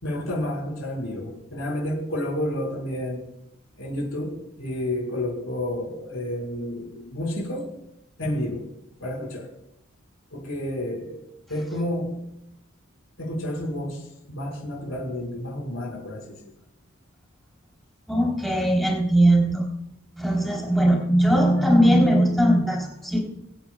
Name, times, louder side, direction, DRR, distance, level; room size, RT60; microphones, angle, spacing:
voice 1, 0.0-3.3 3.8-7.7 8.2-8.7 9.0-9.5 10.3-11.2 11.5-12.2 13.2-16.5, left 1 dB, 85° left, -2 dB, 5.2 m, -30 dB
voice 2, 18.1-19.7 20.2-23.2, right 1 dB, ahead, -2 dB, 3.7 m, -19 dB
24.5 x 9.1 x 2.4 m, 0.80 s
head